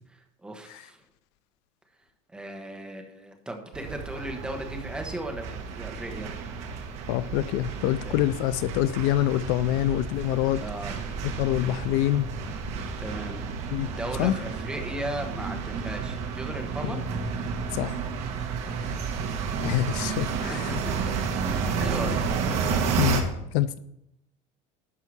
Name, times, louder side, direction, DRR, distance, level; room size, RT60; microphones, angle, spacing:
voice 1, 0.1-1.0 2.3-6.3 8.0-8.2 10.6-11.0 13.0-13.5 13.8-17.0 18.6-19.0 20.7-20.9 21.3-22.3, right 1 dB, 5° right, 3 dB, 1.0 m, -37 dB
sound 1, 3.7-23.2, right 5 dB, 45° right, 1.3 m, -31 dB
voice 2, 7.1-10.6 11.2-12.3 13.7-13.9 14.2-14.4 16.9-17.0 17.7-18.0 19.6-20.7 23.0-23.8, left 13 dB, 65° left, 15 dB, 0.4 m, -26 dB
11.0 x 4.6 x 6.2 m, 0.79 s
cardioid pair, 180°, 15 cm